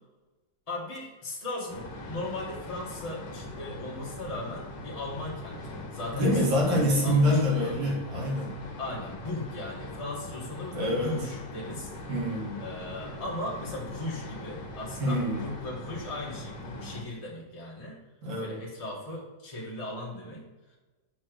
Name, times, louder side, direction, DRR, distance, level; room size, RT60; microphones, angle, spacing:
voice 1, 0.7-7.8 8.8-11.9 12.6-18.0 18.3-20.4, left 2 dB, 20° left, -5 dB, 1.6 m, -37 dB
sound 1, 1.7-17.0, left 1 dB, 60° left, 1.7 m, -41 dB
voice 2, 6.1-8.5 10.7-11.2 12.1-12.6 15.0-15.5 18.2-18.6, equal, 80° right, -3 dB, 3.0 m, -26 dB
6.1 x 4.4 x 6.2 m, 1.2 s
omnidirectional pair, 2.0 m